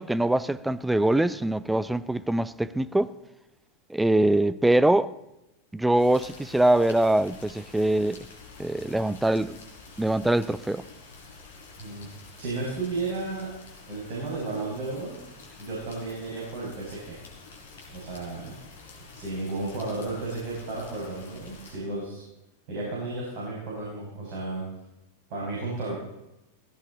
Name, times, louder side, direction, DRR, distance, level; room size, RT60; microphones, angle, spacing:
voice 1, 0.0-3.1 3.9-5.1 5.7-8.3 8.6-9.6 10.0-10.8, right 1 dB, 5° right, 0.6 m, -23 dB
sound 1, 6.0-21.8, left 4 dB, 60° left, 4.3 m, -48 dB
voice 2, 11.8-12.1 12.4-13.5 13.9-15.2 15.6-17.2 17.9-18.6 19.1-22.2 22.7-24.6 25.3-26.0, right 3 dB, 45° right, 5.8 m, -33 dB
17.5 x 16.0 x 4.2 m
figure-of-eight pair, 90°, 0 cm